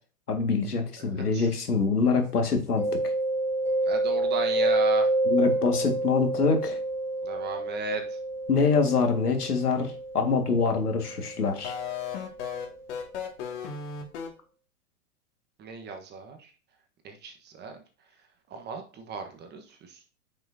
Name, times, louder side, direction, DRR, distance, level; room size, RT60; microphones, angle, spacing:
voice 1, 0.3-2.8 5.3-6.8 8.5-11.7, left 4 dB, 85° left, 4 dB, 2.1 m, -25 dB
voice 2, 1.1-1.5 3.8-5.1 7.2-8.2 15.6-16.5 17.0-17.7 18.5-20.1, right 4 dB, 20° right, 5 dB, 1.3 m, -36 dB
Mallet percussion, 2.8-12.3, right 2 dB, 5° right, 1.9 m, -29 dB
sound 1, 11.6-14.3, left 7 dB, 50° left, 2.4 m, -34 dB
8.9 x 6.2 x 2.8 m, 0.38 s
hypercardioid pair, 115°, 45 cm